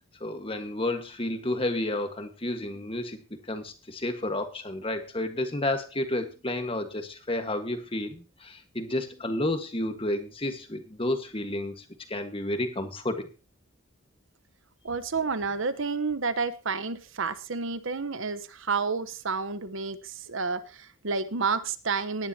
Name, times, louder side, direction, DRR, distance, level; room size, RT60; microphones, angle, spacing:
voice 1, 0.2-13.3, left 1 dB, 25° left, 7 dB, 1.6 m, -31 dB
voice 2, 14.8-22.3, right 4 dB, 65° right, 12 dB, 1.0 m, -30 dB
18.5 x 10.5 x 2.9 m, 0.32 s
head